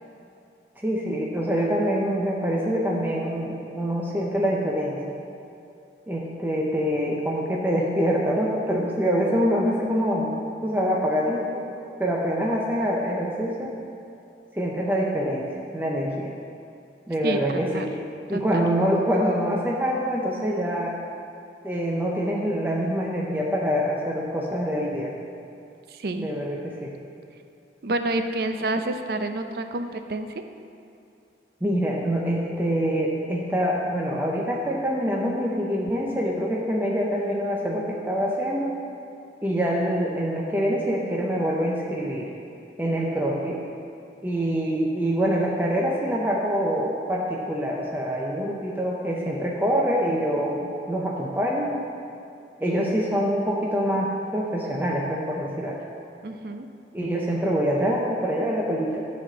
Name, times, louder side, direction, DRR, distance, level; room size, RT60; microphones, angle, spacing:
voice 1, 0.8-5.2 6.1-10.4 10.6-11.6 12.0-13.7 14.5-16.3 17.1-17.9 18.3-20.9 21.6-25.1 26.2-26.9 31.6-38.8 39.4-42.3 42.8-43.6 44.2-51.7 52.6-55.8 56.9-59.1, equal, 10° right, -3 dB, 0.6 m, -25 dB
voice 2, 18.3-18.6 25.9-26.3 27.8-30.3 56.2-56.7, right 2 dB, 60° right, 7 dB, 0.5 m, -28 dB
11.0 x 4.3 x 6.0 m, 2.6 s
head